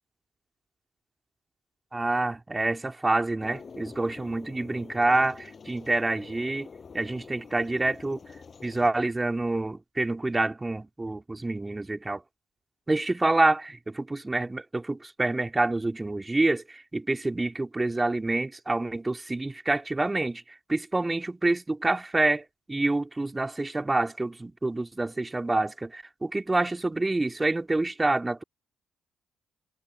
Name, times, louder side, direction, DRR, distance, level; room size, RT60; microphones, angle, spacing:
voice 1, 1.9-6.7 6.9-8.2 8.6-12.2 12.9-20.4 20.7-28.4, right 2 dB, 20° right, 2.6 m, -27 dB
sound 1, 3.4-8.9, left 5 dB, 40° left, 8.0 m, -46 dB
hypercardioid pair, 45°, 0 cm